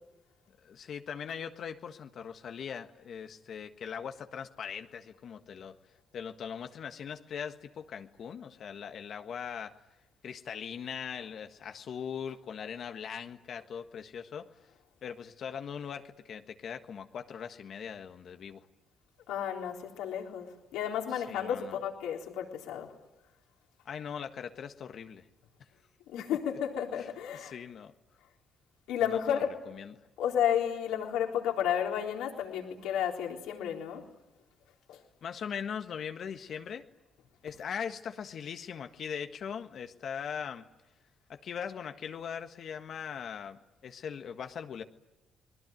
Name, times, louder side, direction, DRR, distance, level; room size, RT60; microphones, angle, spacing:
voice 1, 0.6-5.8 6.1-9.8 10.2-14.5 15.0-18.6 21.3-21.7 23.8-25.3 26.2-26.4 27.0-27.1 27.3-27.9 29.0-29.9 35.2-36.9 37.4-40.6 41.3-44.8, left 7 dB, 65° left, 6 dB, 1.6 m, -40 dB
voice 2, 19.3-22.9 26.1-27.6 28.9-29.5 30.2-34.0 34.9-35.0, left 9 dB, 85° left, 1 dB, 3.9 m, -32 dB
30.0 x 21.0 x 9.2 m, 0.96 s
supercardioid pair, 60°, 0 cm